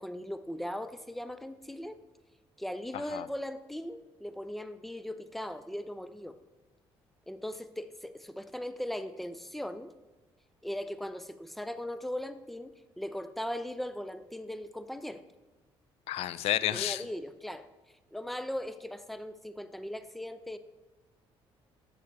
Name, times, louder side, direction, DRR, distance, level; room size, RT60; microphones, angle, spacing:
voice 1, 0.0-2.0 2.6-6.4 7.3-9.9 10.6-15.2 16.7-17.7 18.1-20.6, left 1 dB, ahead, 11 dB, 0.4 m, -39 dB
voice 2, 16.1-17.0, left 13 dB, 75° left, 16 dB, 0.4 m, -31 dB
8.3 x 6.4 x 2.8 m, 1.2 s
cardioid pair, 85°, 11 cm